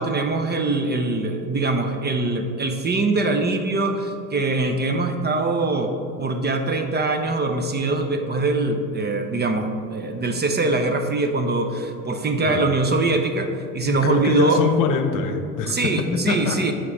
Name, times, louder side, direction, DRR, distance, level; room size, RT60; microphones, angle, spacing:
voice 1, 0.0-14.6 15.7-16.7, right 3 dB, 25° right, 6 dB, 0.7 m, -23 dB
voice 2, 13.9-16.7, left 5 dB, 50° left, 7 dB, 0.9 m, -24 dB
9.4 x 3.7 x 6.4 m, 2.4 s
hypercardioid pair, 85°, 42 cm